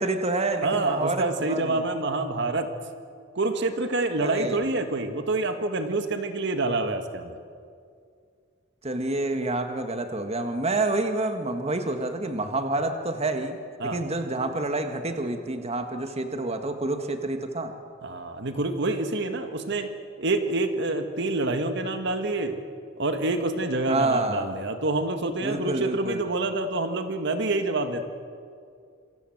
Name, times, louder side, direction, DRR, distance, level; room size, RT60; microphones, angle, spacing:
voice 1, 0.0-1.8 4.2-4.6 8.8-17.7 23.9-24.5 25.4-26.2, right 2 dB, 35° right, 6 dB, 1.7 m, -28 dB
voice 2, 0.6-2.7 3.4-7.4 13.8-14.0 18.0-19.9 20.2-22.6 23.0-28.0, right 2 dB, 65° right, 7 dB, 1.8 m, -27 dB
27.0 x 24.5 x 7.9 m, 2.3 s
head